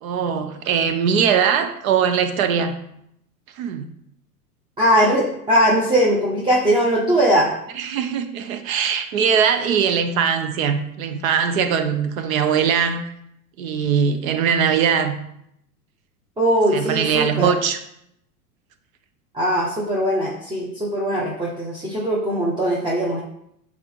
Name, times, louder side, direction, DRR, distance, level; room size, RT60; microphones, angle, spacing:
voice 1, 0.0-2.8 3.6-3.9 7.7-13.1 13.6-15.2 16.7-17.8, right 7 dB, 60° right, 8 dB, 1.0 m, -21 dB
voice 2, 4.8-7.5 16.4-17.5 19.3-23.2, equal, 10° right, -4 dB, 1.3 m, -20 dB
6.8 x 4.2 x 4.7 m, 0.75 s
hypercardioid pair, 95°, 46 cm